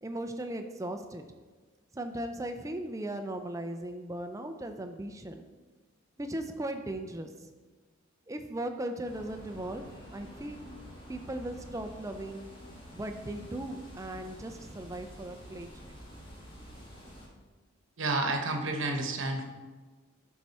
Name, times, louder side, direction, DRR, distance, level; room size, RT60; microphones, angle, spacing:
voice 1, 0.0-1.2 1.9-5.4 6.2-7.5 8.3-9.8 10.1-10.6 11.1-12.5 12.9-15.9, right 1 dB, 15° right, 6 dB, 0.4 m, -37 dB
sound 1, 9.0-17.3, equal, 25° left, 1.6 m, -49 dB
voice 2, 18.0-19.4, right 2 dB, 65° right, 4 dB, 1.0 m, -30 dB
11.0 x 4.6 x 4.2 m, 1.4 s
head